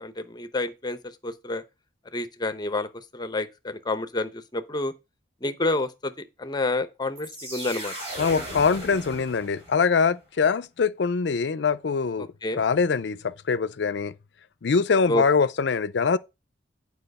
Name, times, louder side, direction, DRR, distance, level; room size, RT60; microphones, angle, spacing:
voice 1, 0.0-1.6 2.1-4.9 5.4-6.1 6.4-7.9 12.4-12.6 15.1-15.2, left 2 dB, 20° left, 0.7 m, -29 dB
sound 1, 7.2-10.0, right 1 dB, 30° right, 4.7 m, -37 dB
voice 2, 8.2-12.3 12.6-14.1 14.6-16.2, left 5 dB, 60° left, 0.5 m, -23 dB
9.0 x 4.8 x 5.3 m
head